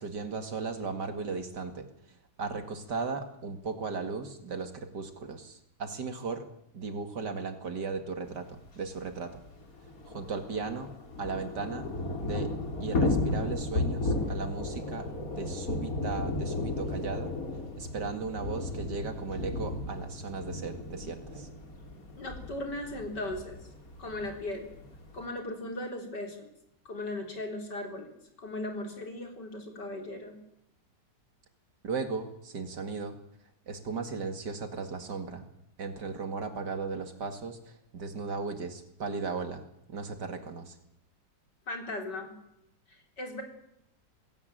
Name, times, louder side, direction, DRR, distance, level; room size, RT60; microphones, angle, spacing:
voice 1, 0.0-6.4 6.7-9.4 10.0-10.9 11.2-11.9 12.2-12.5 12.8-15.1 15.4-17.3 17.8-21.5 31.8-33.2 33.7-35.5 35.8-40.8, right 4 dB, 65° right, 8 dB, 2.8 m, -36 dB
Thunder / Rain, 8.7-8.8 9.0-9.1 9.4-25.3, left 2 dB, 50° left, 3.3 m, -34 dB
voice 2, 22.2-23.6 24.0-24.7 25.1-26.5 26.8-28.1 28.4-30.4 41.7-42.3 42.9-43.4, left 1 dB, 65° left, 4 dB, 4.6 m, -37 dB
19.5 x 17.5 x 9.1 m, 0.79 s
omnidirectional pair, 2.0 m